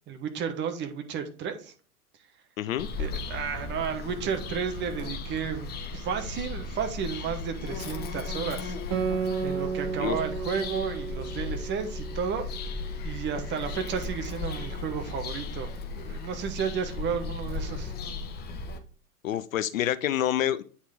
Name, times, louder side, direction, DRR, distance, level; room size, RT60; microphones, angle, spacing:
voice 1, 0.1-1.7 3.0-8.7 9.4-12.5 13.0-17.9, right 7 dB, 25° right, 1.0 m, -32 dB
voice 2, 2.6-2.9 10.0-10.2 19.2-20.6, left 11 dB, 60° left, 0.6 m, -27 dB
Bird vocalization bird call bird song, 2.8-18.8, left 3 dB, 20° left, 0.9 m, -36 dB
Guitar, 8.9-13.8, right 6 dB, 45° right, 1.5 m, -34 dB
8.5 x 4.1 x 3.5 m
figure-of-eight pair, 95°, 45 cm